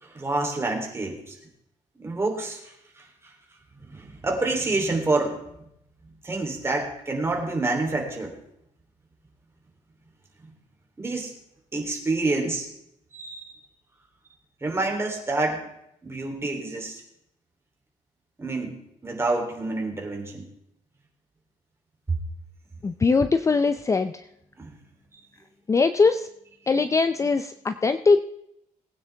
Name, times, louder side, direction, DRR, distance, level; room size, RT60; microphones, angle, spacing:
voice 1, 0.0-1.4 2.0-3.1 3.9-5.4 6.2-8.4 11.0-11.3 11.7-12.7 13.1-13.5 14.6-15.6 16.0-17.0 18.4-18.8 19.0-20.5 22.1-22.2 24.6-24.7, right 2 dB, 20° right, 1 dB, 3.2 m, -27 dB
voice 2, 22.8-24.1 25.7-26.3 26.7-28.2, left 4 dB, 20° left, 10 dB, 0.5 m, -21 dB
19.5 x 9.3 x 3.4 m, 0.77 s
cardioid pair, 125°, 14 cm